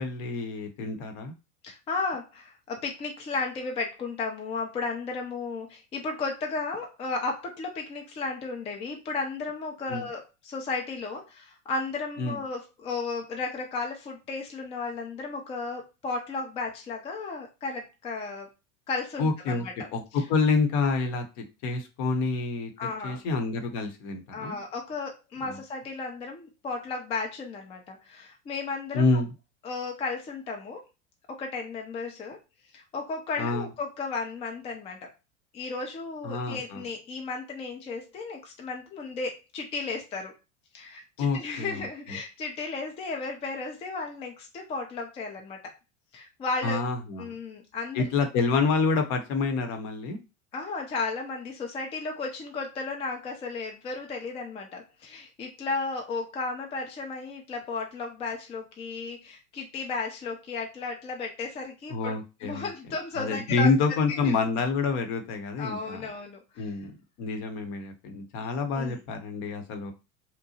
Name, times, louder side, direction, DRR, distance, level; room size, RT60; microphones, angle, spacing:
voice 1, 0.0-1.3 9.9-10.1 12.2-12.4 19.2-19.6 19.9-21.2 21.6-22.7 23.0-24.6 25.4-25.6 28.9-29.3 33.4-33.7 36.2-36.8 41.2-41.8 46.6-47.3 47.9-50.2 61.9-62.7 63.1-66.1 66.6-66.9 67.2-69.9, left 4 dB, 45° left, 6 dB, 0.8 m, -27 dB
voice 2, 1.6-18.5 18.9-19.9 22.8-23.2 24.3-29.2 29.6-30.8 31.3-32.4 32.7-35.1 35.5-40.3 40.7-45.7 46.1-46.8 47.2-48.0 50.5-62.1 62.4-63.7 64.2-64.3 65.6-66.7 68.8-69.0, left 3 dB, 15° left, 2 dB, 0.4 m, -34 dB
2.8 x 2.1 x 2.8 m, 0.28 s
figure-of-eight pair, 85°, 39 cm